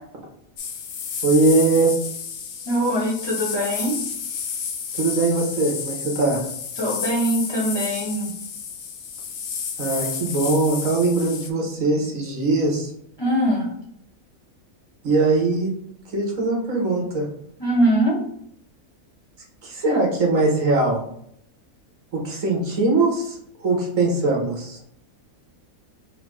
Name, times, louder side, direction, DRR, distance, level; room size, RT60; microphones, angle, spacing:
sound 1, 0.6-11.5, left 6 dB, 60° left, 0.5 m, -31 dB
voice 1, 1.2-1.9 4.9-6.4 9.8-12.9 15.0-15.7 16.1-17.2 19.6-21.0 22.1-24.8, right 3 dB, 65° right, -1 dB, 1.6 m, -21 dB
voice 2, 2.6-4.0 6.8-8.3 13.2-13.7 17.6-18.2, right 1 dB, 20° left, -4 dB, 0.9 m, -22 dB
4.8 x 2.1 x 4.7 m, 0.70 s
omnidirectional pair, 1.5 m